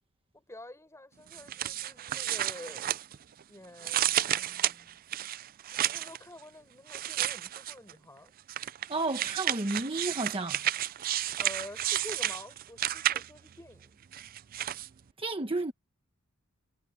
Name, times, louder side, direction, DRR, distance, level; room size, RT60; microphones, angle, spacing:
voice 1, 0.3-2.9 3.5-5.0 5.7-8.3 11.4-14.0, left 1 dB, 15° left, 5.8 m, -48 dB
sound 1, 1.3-3.4 3.8-6.2 6.9-7.9 8.5-13.5 14.1-14.9, right 12 dB, 45° right, 0.4 m, -32 dB
voice 2, 8.9-10.6 15.2-15.7, right 2 dB, 25° right, 1.1 m, -32 dB
head